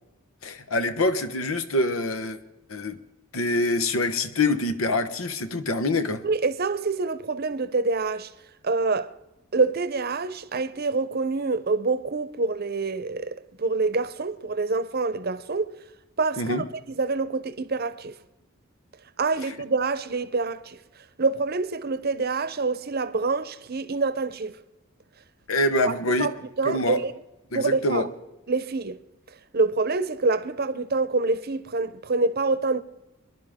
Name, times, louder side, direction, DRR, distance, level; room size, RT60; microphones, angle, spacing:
voice 1, 0.4-2.4 2.7-3.0 3.3-6.2 16.4-16.6 25.5-26.3 26.6-27.0 27.5-28.1, left 2 dB, 85° left, 1.1 m, -25 dB
voice 2, 6.2-8.3 8.6-9.1 9.5-15.7 16.2-18.2 19.2-20.8 21.2-24.6 25.9-26.0 26.2-27.1 27.5-28.1 28.5-29.0 29.5-32.8, right 3 dB, 50° right, 0.8 m, -26 dB
25.0 x 11.0 x 3.7 m
head